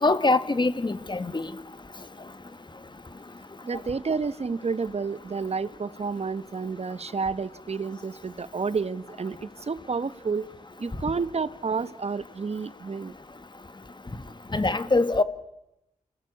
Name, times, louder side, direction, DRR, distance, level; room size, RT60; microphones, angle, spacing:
voice 1, 0.0-1.5 14.5-15.2, left 3 dB, 35° left, 1.8 m, -23 dB
voice 2, 3.6-10.4 10.8-13.1, right 5 dB, 50° right, 1.1 m, -30 dB
28.5 x 19.0 x 8.3 m
cardioid pair, 65°, 14 cm